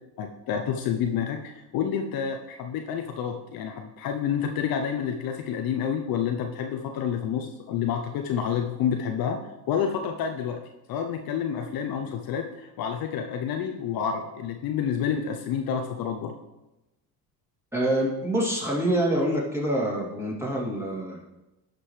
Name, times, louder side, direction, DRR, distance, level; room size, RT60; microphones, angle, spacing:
voice 1, 0.2-10.6 10.9-16.3, left 8 dB, 55° left, 4 dB, 0.8 m, -29 dB
voice 2, 17.7-21.2, right 1 dB, 5° right, -4 dB, 2.6 m, -26 dB
11.5 x 5.2 x 3.3 m, 0.98 s
hypercardioid pair, 75°, 44 cm